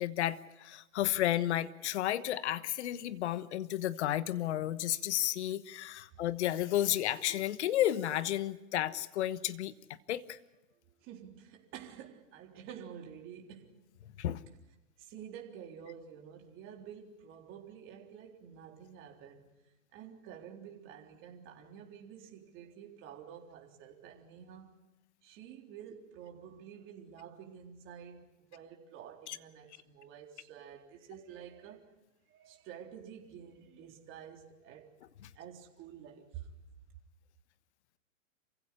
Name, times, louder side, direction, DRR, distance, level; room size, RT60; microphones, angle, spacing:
voice 1, 0.0-9.7 10.1-10.4 14.2-14.4 29.3-29.4 35.2-35.3, left 13 dB, 60° left, 1.2 m, -32 dB
voice 2, 11.0-13.8 15.0-19.6 19.9-24.8 25.2-31.9 32.3-34.9 35.4-36.5, right 8 dB, 30° right, 3.9 m, -50 dB
27.5 x 16.0 x 10.0 m
hypercardioid pair, 135°, 39 cm